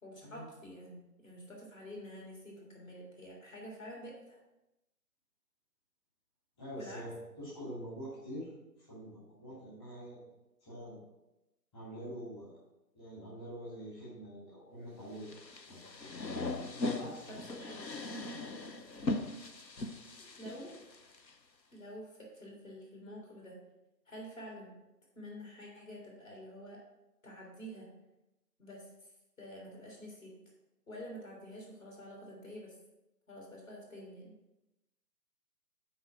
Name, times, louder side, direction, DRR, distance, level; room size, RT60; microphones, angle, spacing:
voice 1, 0.0-4.4 6.8-7.0 17.3-17.9 20.2-20.7 21.7-23.6 24.1-24.7 25.1-26.8 27.2-27.9 28.6-28.9 29.4-30.3 30.9-32.7 33.3-34.3, equal, 50° left, -2 dB, 3.3 m, -48 dB
voice 2, 6.6-8.5 8.8-10.2 10.6-11.0 11.7-12.6 12.9-15.3 15.7-16.1 16.8-17.4, equal, 15° left, -11 dB, 2.2 m, -45 dB
sound 1, 15.2-21.3, left 2 dB, 85° left, 0.9 m, -39 dB
9.1 x 4.1 x 5.8 m, 0.96 s
figure-of-eight pair, 150°, 50 cm